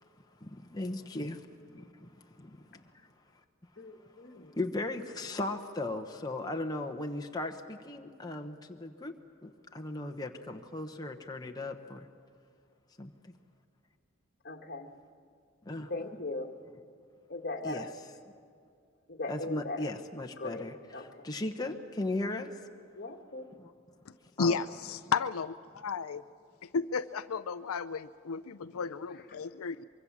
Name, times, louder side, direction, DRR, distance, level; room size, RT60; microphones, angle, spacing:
voice 1, 0.4-3.1 4.6-9.1 9.4-12.1 13.0-13.3 15.6-16.2 17.6-17.9 19.3-22.5 23.6-23.7 24.4-24.6, left 2 dB, 20° left, 1.0 m, -37 dB
voice 2, 3.8-4.6 14.4-14.9 15.9-16.5 17.3-17.9 19.1-19.9 20.4-21.1 22.9-23.5, left 2 dB, 45° left, 1.6 m, -39 dB
voice 3, 24.4-26.2 26.7-29.8, left 5 dB, 90° left, 0.5 m, -33 dB
24.0 x 23.0 x 7.4 m
head